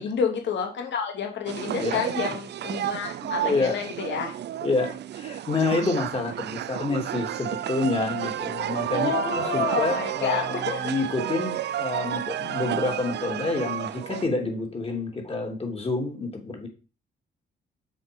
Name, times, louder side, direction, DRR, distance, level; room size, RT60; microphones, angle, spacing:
voice 1, 0.0-4.3 8.8-10.8, left 6 dB, 65° left, 3 dB, 2.4 m, -29 dB
sound 1, 1.5-14.3, right 11 dB, 60° right, 0.6 m, -31 dB
voice 2, 1.8-2.3 3.2-3.9 4.6-16.7, left 3 dB, 30° left, 2 dB, 3.3 m, -28 dB
7.6 x 6.3 x 5.5 m, 0.34 s
cardioid pair, 90°, 20 cm